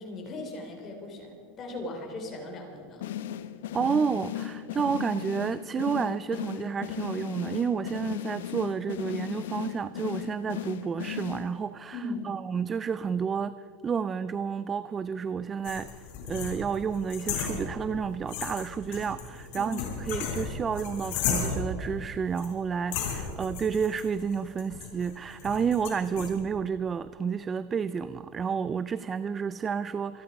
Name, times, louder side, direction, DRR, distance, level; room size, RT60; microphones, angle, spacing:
voice 1, 0.0-3.1 11.9-12.3 19.5-19.8, left 2 dB, 25° left, 1 dB, 3.4 m, -38 dB
sound 1, 3.0-11.8, left 11 dB, 80° left, 0.9 m, -36 dB
voice 2, 3.7-12.0 12.3-30.2, right 6 dB, 20° right, 16 dB, 0.3 m, -30 dB
sound 2, 15.6-18.0 18.3-21.8 22.4-22.5 22.9-26.3, left 6 dB, 55° left, 4.0 m, -34 dB
26.0 x 10.5 x 5.2 m, 2.4 s
supercardioid pair, 155°, 0 cm